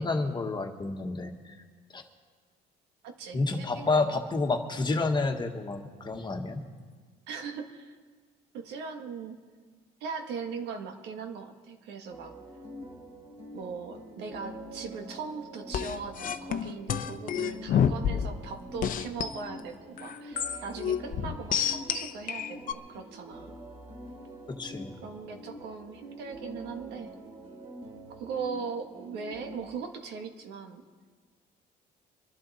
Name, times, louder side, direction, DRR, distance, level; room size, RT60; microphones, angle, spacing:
voice 1, 0.0-1.5 1.9-2.0 3.3-6.6 24.5-24.9, left 3 dB, 25° left, 4 dB, 1.6 m, -29 dB
voice 2, 3.0-4.2 7.3-8.0 8.5-9.4 10.0-12.3 13.5-23.6 25.0-27.1 28.2-30.8, right 5 dB, 85° right, 5 dB, 1.7 m, -39 dB
sound 1, 12.1-29.6, equal, 40° right, 3.0 m, -45 dB
sound 2, 15.7-18.4 18.8-19.4 20.0-22.7, left 8 dB, 55° left, 0.8 m, -29 dB
25.0 x 11.5 x 4.2 m, 1.5 s
cardioid pair, 110°, 17 cm